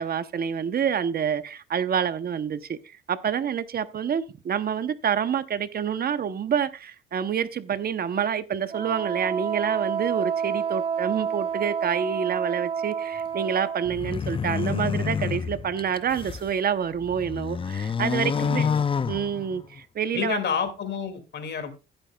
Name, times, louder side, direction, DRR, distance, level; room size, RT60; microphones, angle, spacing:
voice 1, 0.0-18.7 19.1-20.4, right 8 dB, 50° right, 0.8 m, -27 dB
Wind instrument woodwind instrument, 8.7-13.9, right 7 dB, 30° right, 0.5 m, -29 dB
sound 1, 13.8-16.5 17.0-19.8, left 6 dB, 25° left, 0.5 m, -28 dB
voice 2, 18.4-18.8 20.1-21.7, left 6 dB, 60° left, 2.4 m, -29 dB
15.5 x 8.8 x 2.3 m
cardioid pair, 90°, 20 cm